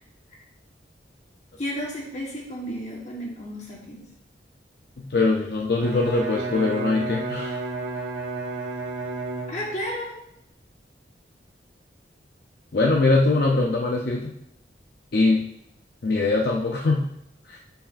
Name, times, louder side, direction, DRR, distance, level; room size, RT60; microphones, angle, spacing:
voice 1, 1.6-4.0 9.5-10.1, equal, 40° left, -2 dB, 1.5 m, -32 dB
voice 2, 5.0-7.6 12.7-14.4 15.1-15.4 16.0-17.1 17.5-17.6, left 3 dB, 55° left, 0 dB, 0.5 m, -22 dB
Bowed string instrument, 5.7-10.0, right 2 dB, 75° right, 1.4 m, -32 dB
8.6 x 4.7 x 2.6 m, 0.76 s
head